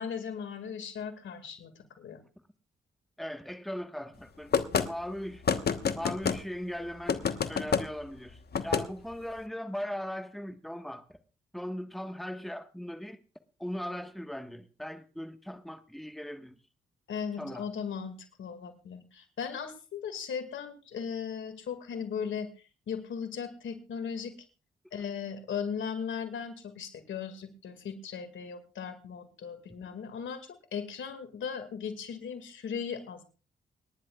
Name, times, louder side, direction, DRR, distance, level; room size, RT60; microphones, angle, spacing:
voice 1, 0.0-2.2 17.1-22.5 22.9-24.3 24.9-33.2, left 7 dB, 75° left, 2.1 m, -37 dB
voice 2, 3.2-5.4 5.9-7.2 7.5-11.2 11.5-13.2 13.6-16.5 17.4-17.6, equal, ahead, 1.4 m, -39 dB
sound 1, 4.5-4.9 5.5-6.4 7.1-7.8 8.5-8.9, left 6 dB, 55° left, 1.2 m, -27 dB
28.5 x 10.5 x 2.4 m
supercardioid pair, 45°, 20 cm